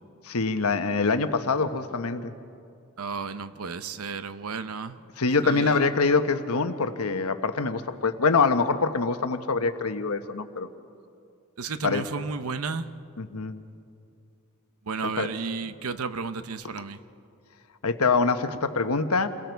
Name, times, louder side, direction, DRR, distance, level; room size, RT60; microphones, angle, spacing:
voice 1, 0.2-2.3 5.2-10.7 11.8-12.0 13.2-13.6 15.0-15.3 17.8-19.3, left 4 dB, 80° left, 9 dB, 1.1 m, -25 dB
voice 2, 3.0-5.0 5.4-5.9 11.6-12.9 14.9-17.0, right 4 dB, 75° right, 12 dB, 0.8 m, -33 dB
29.0 x 22.0 x 4.6 m, 2.5 s
head